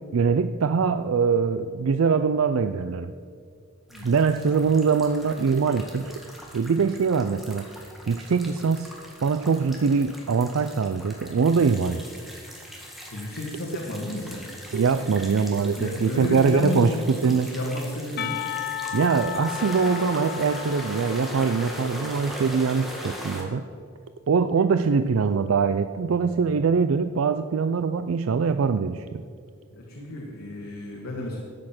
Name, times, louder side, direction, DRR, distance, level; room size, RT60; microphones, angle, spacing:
voice 1, 0.0-3.1 4.0-6.2 6.5-7.7 8.1-8.9 9.2-12.0 14.7-17.5 18.9-23.6 24.3-29.2, right 5 dB, 70° right, 10 dB, 0.4 m, -23 dB
sound 1, 3.9-23.4, equal, ahead, 1.9 m, -40 dB
voice 2, 13.1-14.4 15.8-18.4 29.7-31.4, left 1 dB, 90° left, -3 dB, 2.0 m, -32 dB
Percussion, 18.2-23.0, left 11 dB, 50° left, 0.4 m, -35 dB
13.0 x 8.7 x 6.0 m, 2.2 s
head